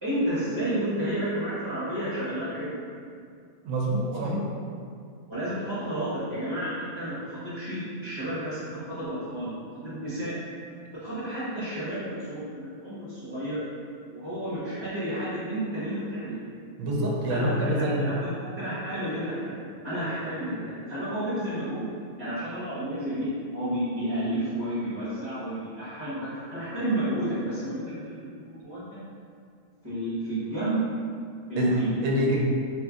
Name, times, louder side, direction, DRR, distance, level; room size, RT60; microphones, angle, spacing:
voice 1, 0.0-2.8 4.0-4.2 5.3-9.5 9.8-10.4 10.9-13.6 14.1-16.4 17.3-21.9 22.2-28.9 29.8-30.9 31.5-31.9, right 1 dB, 20° right, -15 dB, 1.0 m, -31 dB
voice 2, 3.6-4.4 16.8-18.1 31.6-32.4, right 1 dB, 75° right, -3 dB, 1.0 m, -26 dB
2.8 x 2.5 x 3.5 m, 2.3 s
omnidirectional pair, 1.5 m